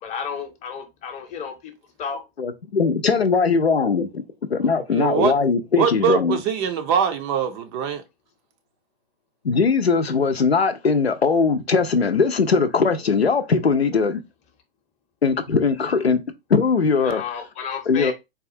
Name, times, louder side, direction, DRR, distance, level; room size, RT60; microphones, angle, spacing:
voice 1, 0.0-1.7 2.0-2.2 17.0-18.1, left 6 dB, 25° left, 0.7 m, -32 dB
voice 2, 2.4-4.2 4.5-6.4 9.4-14.2 15.2-16.2 16.5-17.2 17.9-18.1, left 5 dB, 90° left, 0.6 m, -20 dB
voice 3, 4.9-5.3 5.8-8.0, right 7 dB, 30° right, 0.4 m, -22 dB
4.0 x 2.3 x 2.6 m
figure-of-eight pair, 105°, 30 cm